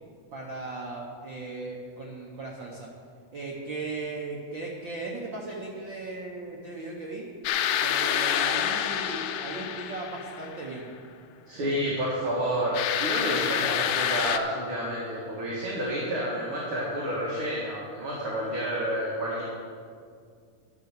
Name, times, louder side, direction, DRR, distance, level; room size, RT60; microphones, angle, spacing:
voice 1, 0.3-2.9 3.3-7.3 7.8-10.9, right 3 dB, 80° right, -2 dB, 1.0 m, -37 dB
sound 1, 7.4-10.7 12.7-14.4, left 10 dB, 80° left, 1.7 m, -28 dB
voice 2, 11.5-19.4, equal, 45° right, -7 dB, 2.4 m, -29 dB
12.0 x 7.1 x 6.6 m, 2.2 s
omnidirectional pair, 3.7 m